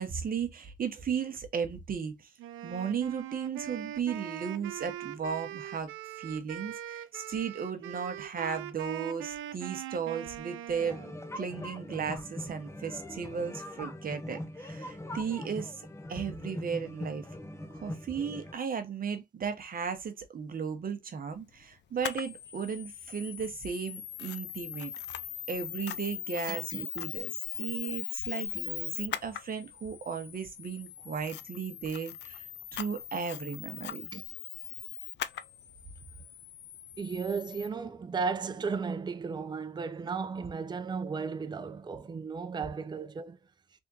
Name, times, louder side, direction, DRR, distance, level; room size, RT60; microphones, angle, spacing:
voice 1, 0.0-2.3 2.6-5.9 6.2-11.0 11.3-17.3 17.7-24.9 25.5-32.4 32.7-34.1, right 6 dB, 45° right, 1.0 m, -35 dB
Wind instrument woodwind instrument, 2.4-11.2, right 11 dB, 90° right, 0.6 m, -41 dB
sound 1, 10.8-18.5, left 1 dB, 15° left, 0.7 m, -41 dB
Camera, 22.0-37.7, left 11 dB, 60° left, 0.5 m, -40 dB
voice 2, 26.5-26.9 34.1-34.2 37.0-43.4, right 5 dB, 20° right, 0.5 m, -35 dB
3.5 x 3.5 x 2.8 m
cardioid pair, 90°, 20 cm